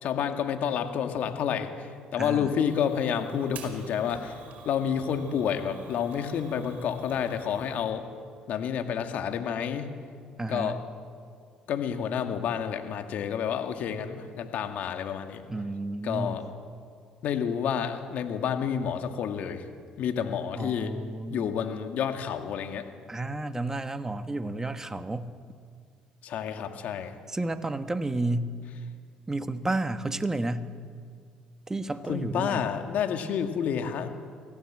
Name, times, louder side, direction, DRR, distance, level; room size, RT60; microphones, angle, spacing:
voice 1, 0.0-4.4 4.7-8.0 8.5-9.9 10.5-10.8 11.7-15.4 16.0-16.5 17.2-19.6 20.0-20.9 21.3-22.9 26.2-27.1 32.1-34.1, left 8 dB, 65° left, 6 dB, 2.1 m, -29 dB
voice 2, 2.2-2.5 10.4-10.8 15.5-16.4 20.5-21.5 23.1-25.3 27.3-28.5 29.3-30.7 31.7-32.7, right 2 dB, 20° right, 10 dB, 1.5 m, -31 dB
Fire, 2.6-7.9, right 5 dB, 55° right, 5.2 m, -48 dB
24.0 x 16.5 x 7.6 m, 2.1 s
supercardioid pair, 65°, 3 cm